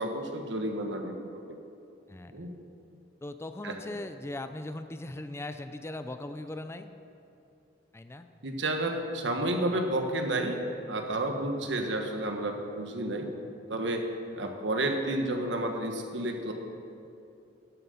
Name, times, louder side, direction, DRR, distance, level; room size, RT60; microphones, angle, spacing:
voice 1, 0.0-1.6 2.3-2.5 3.6-4.0 8.4-10.6 10.9-13.3 13.7-14.0 14.4-16.5, right 1 dB, 75° right, 4 dB, 1.3 m, -31 dB
voice 2, 2.1-2.5 3.2-6.9 7.9-8.3 14.4-14.5, left 1 dB, 15° left, 9 dB, 0.4 m, -39 dB
11.5 x 7.5 x 7.0 m, 2.7 s
head